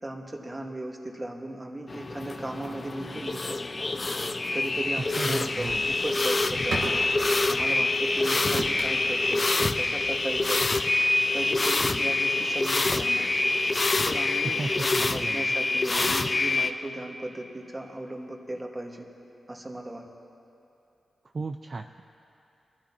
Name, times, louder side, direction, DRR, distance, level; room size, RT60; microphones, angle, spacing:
voice 1, 0.0-3.5 4.5-7.0 7.5-10.8 11.3-13.3 14.0-19.0 19.5-20.1, right 1 dB, 25° right, 2 dB, 1.6 m, -36 dB
sound 1, 1.9-16.7, left 2 dB, 40° left, 0.5 m, -26 dB
sound 2, 5.0-12.3, right 2 dB, 90° right, 1.4 m, -40 dB
voice 2, 5.2-5.9 14.4-15.5 21.3-22.0, right 3 dB, 50° right, 6 dB, 0.4 m, -34 dB
21.5 x 12.0 x 2.9 m, 2.7 s
supercardioid pair, 45°, 0 cm